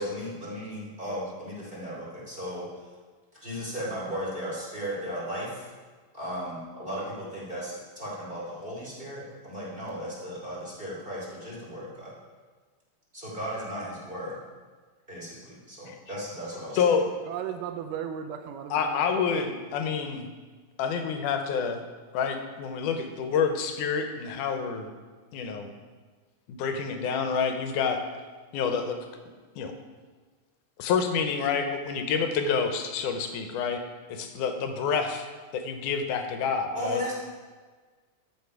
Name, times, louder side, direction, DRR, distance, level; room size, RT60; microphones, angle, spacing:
voice 1, 0.0-2.7 3.4-5.6 6.1-12.1 13.1-14.4 15.1-17.0 36.7-37.1, equal, 15° right, -6 dB, 2.6 m, -36 dB
voice 2, 17.3-19.5, right 9 dB, 85° right, 6 dB, 2.2 m, -36 dB
voice 3, 18.7-20.3 20.8-21.9 22.1-24.9 25.3-25.8 26.5-28.0 28.5-29.0 29.6-29.7 30.8-33.8 34.1-35.3 35.5-37.0, left 6 dB, 75° left, 6 dB, 2.3 m, -28 dB
13.5 x 6.0 x 4.7 m, 1.4 s
omnidirectional pair, 3.7 m